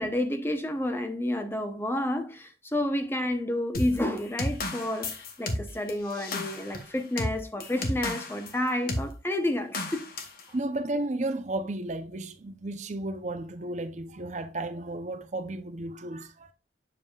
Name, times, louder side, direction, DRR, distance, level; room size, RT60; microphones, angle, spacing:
voice 1, 0.0-10.0, left 1 dB, 10° left, 0.7 m, -30 dB
sound 1, 3.7-8.5 8.9-9.1 9.7-10.4, left 1 dB, 50° left, 1.2 m, -33 dB
voice 2, 10.5-16.5, right 2 dB, 40° right, 0.6 m, -33 dB
7.5 x 6.9 x 2.3 m
head